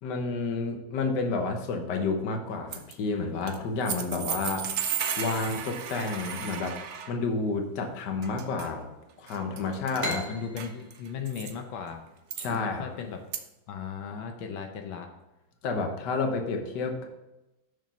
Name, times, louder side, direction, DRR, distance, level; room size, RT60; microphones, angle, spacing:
voice 1, 0.0-4.7 5.2-6.8 7.1-8.9 9.2-10.2 12.4-12.9 15.6-17.1, left 4 dB, 65° left, 4 dB, 1.6 m, -30 dB
sound 1, 2.7-2.9 3.5-3.6 3.9-7.1 8.2-8.7 9.3-9.6 9.9-10.2 10.6-11.5 12.3-12.6 13.3-13.4, right 8 dB, 70° right, 0.6 m, -34 dB
voice 2, 10.0-12.0 12.5-13.2 13.7-15.1, left 6 dB, 85° left, 4 dB, 1.6 m, -36 dB
sound 2, 10.0-13.4, equal, 20° right, 1.1 m, -39 dB
6.6 x 6.3 x 5.4 m, 0.98 s
omnidirectional pair, 2.1 m